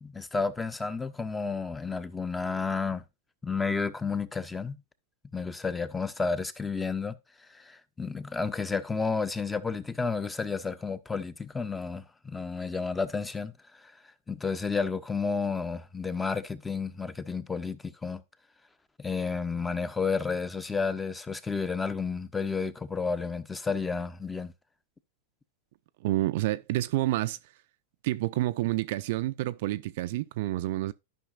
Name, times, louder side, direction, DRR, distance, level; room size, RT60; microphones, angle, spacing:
voice 1, 0.0-3.0 3.4-4.8 5.3-7.2 7.5-13.5 13.8-13.9 14.3-18.2 19.0-24.5, left 4 dB, 10° left, 0.6 m, -31 dB
voice 2, 26.0-27.4 28.0-30.9, right 16 dB, 60° right, 0.4 m, -29 dB
13.0 x 5.5 x 2.4 m
hypercardioid pair, 105°, 0 cm